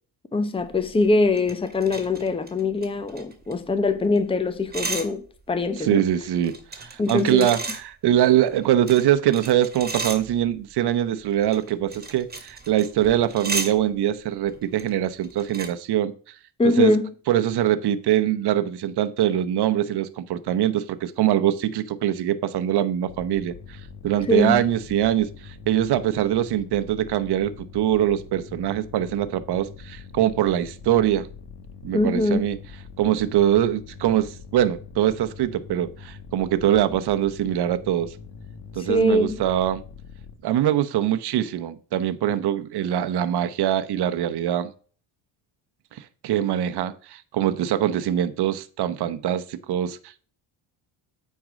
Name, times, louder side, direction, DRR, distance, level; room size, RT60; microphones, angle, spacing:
voice 1, 0.3-5.2 5.5-6.0 7.0-7.5 16.6-17.1 24.3-24.6 31.9-32.5 38.8-39.4, left 2 dB, 10° left, 0.9 m, -22 dB
sound 1, 0.7-4.2 4.4-5.1 5.5-7.8 8.5-10.6 11.3-13.7 14.5-14.9 15.2-15.7, right 3 dB, 20° right, 2.0 m, -34 dB
voice 2, 5.8-16.3 16.6-16.9 17.3-31.3 31.8-32.6 33.0-38.1 38.7-39.8 40.4-44.7 45.9-50.2, right 11 dB, 55° right, 1.0 m, -23 dB
sound 2, 23.1-40.4, left 6 dB, 55° left, 1.8 m, -43 dB
9.0 x 4.7 x 5.1 m
cardioid pair, 100°, 48 cm